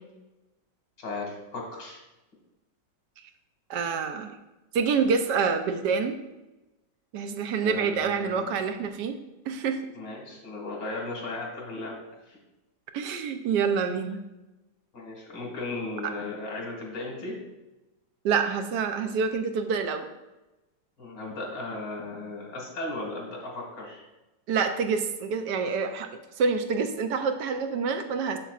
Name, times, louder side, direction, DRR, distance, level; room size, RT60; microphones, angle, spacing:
voice 1, 1.0-2.0 7.6-8.5 9.9-12.0 12.3-12.4 14.9-17.4 21.0-24.0, left 2 dB, 85° left, -1 dB, 2.6 m, -36 dB
voice 2, 3.7-4.3 4.7-6.2 7.1-9.2 9.5-9.8 12.9-14.2 18.2-20.1 24.5-26.1 26.4-28.4, right 5 dB, 75° right, 6 dB, 1.2 m, -27 dB
7.2 x 6.8 x 2.4 m, 1.0 s
omnidirectional pair, 1.9 m